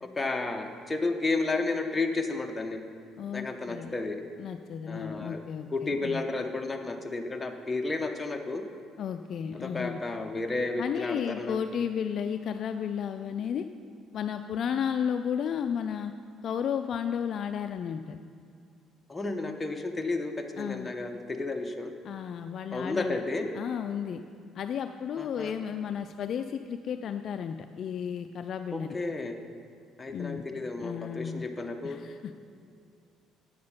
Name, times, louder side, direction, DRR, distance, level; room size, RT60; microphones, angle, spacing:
voice 1, 0.0-2.8 3.3-4.2 4.9-5.4 5.7-8.6 9.6-11.6 19.1-21.9 22.7-23.5 25.2-25.5 28.7-29.3 30.0-32.0, left 3 dB, 15° left, 3 dB, 0.8 m, -32 dB
voice 2, 3.2-4.0 4.4-6.2 9.0-10.0 10.8-13.7 14.1-16.1 16.4-18.2 20.6-20.9 22.0-23.2 23.5-24.2 24.5-28.9 30.1-30.5 30.8-31.4 31.8-32.3, left 8 dB, 55° left, 8 dB, 0.3 m, -33 dB
8.7 x 6.7 x 5.5 m, 2.4 s
cardioid pair, 100°, 0 cm